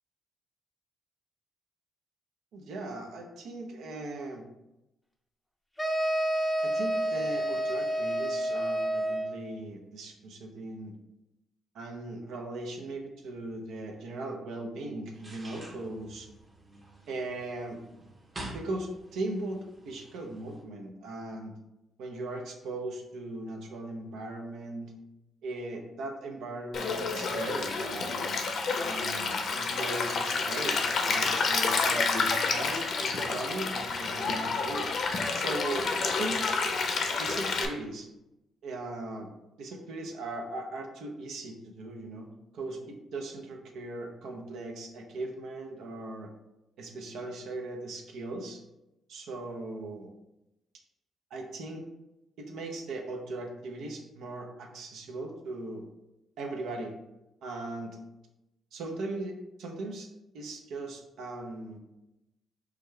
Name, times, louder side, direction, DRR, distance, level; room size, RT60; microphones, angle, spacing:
voice 1, 2.5-4.4 6.6-10.9 11.7-16.3 17.1-17.8 18.5-21.5 22.0-24.9 25.4-28.4 28.8-34.9 35.3-36.4 37.2-38.1 38.6-39.3 39.6-42.3 42.5-46.3 46.8-48.6 49.1-50.1 51.3-51.8 52.4-55.8 56.4-56.9 57.4-58.0 58.7-60.1 60.3-61.8, right 2 dB, 80° right, 2 dB, 0.7 m, -38 dB
sound 1, 5.8-9.4, right 1 dB, 10° left, 0.5 m, -29 dB
sound 2, 15.1-20.6, right 1 dB, 25° right, 0.9 m, -48 dB
Stream, 26.7-37.7, left 4 dB, 60° left, 0.6 m, -29 dB
4.9 x 2.4 x 3.2 m, 0.92 s
cardioid pair, 90°, 0 cm